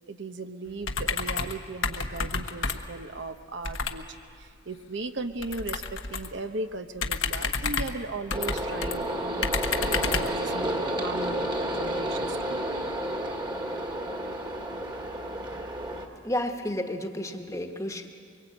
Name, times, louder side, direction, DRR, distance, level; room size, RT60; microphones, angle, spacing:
voice 1, 0.0-12.8, right 3 dB, 60° right, 8 dB, 1.0 m, -37 dB
sound 1, 0.8-1.6 1.8-3.0 3.6-4.0 5.4-6.4 7.0-9.0 9.4-10.4, left 5 dB, 75° left, 1.4 m, -30 dB
sound 2, 8.3-16.1, right 1 dB, 20° right, 1.7 m, -31 dB
voice 2, 16.2-18.1, left 1 dB, 15° left, 5 dB, 1.3 m, -31 dB
23.5 x 23.0 x 8.6 m, 2.3 s
head